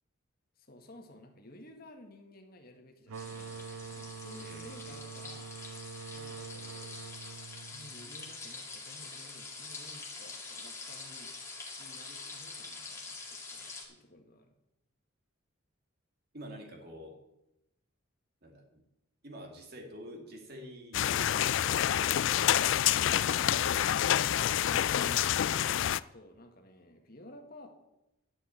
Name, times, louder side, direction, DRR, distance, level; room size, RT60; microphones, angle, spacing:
voice 1, 0.6-5.6 6.1-11.3 11.8-14.5 23.3-27.7, left 1 dB, 45° left, 4 dB, 1.6 m, -53 dB
sound 1, 3.1-13.8, left 4 dB, 15° left, 2.2 m, -45 dB
sound 2, 3.1-8.5, right 5 dB, 90° right, 0.5 m, -45 dB
voice 2, 4.4-5.0 16.3-17.2 18.4-18.8 19.2-23.1, equal, 50° right, 3 dB, 2.2 m, -49 dB
sound 3, 20.9-26.0, left 11 dB, 60° left, 0.3 m, -27 dB
11.0 x 6.2 x 8.7 m, 0.88 s
head